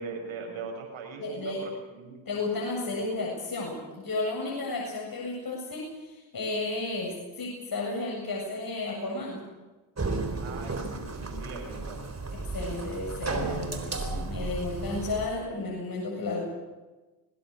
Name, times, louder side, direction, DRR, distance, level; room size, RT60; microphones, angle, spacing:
voice 1, 0.0-2.3 10.4-12.0, right 4 dB, 70° right, 3 dB, 6.9 m, -40 dB
voice 2, 1.2-1.6 2.3-9.4 12.5-16.4, left 2 dB, 45° left, -2 dB, 7.7 m, -33 dB
sound 1, 10.0-15.3, right 3 dB, 30° right, 4.1 m, -33 dB
23.0 x 20.0 x 6.7 m, 1.2 s
supercardioid pair, 55°, 49 cm